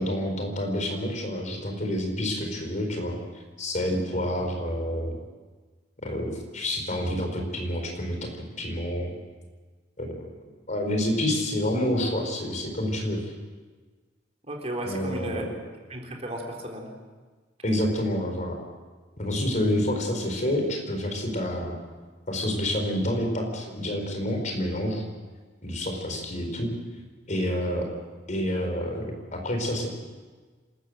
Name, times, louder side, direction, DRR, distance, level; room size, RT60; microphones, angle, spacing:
voice 1, 0.0-3.2 3.6-5.2 6.0-9.1 10.0-10.3 10.7-13.2 14.8-15.5 17.6-18.6 19.2-21.8 22.3-25.0 25.6-26.7 27.3-27.9 28.3-29.9, left 1 dB, 45° left, 4 dB, 4.7 m, -28 dB
voice 2, 14.4-15.5 15.9-16.9, right 1 dB, 35° right, 0 dB, 4.0 m, -34 dB
27.5 x 13.5 x 7.8 m, 1.4 s
head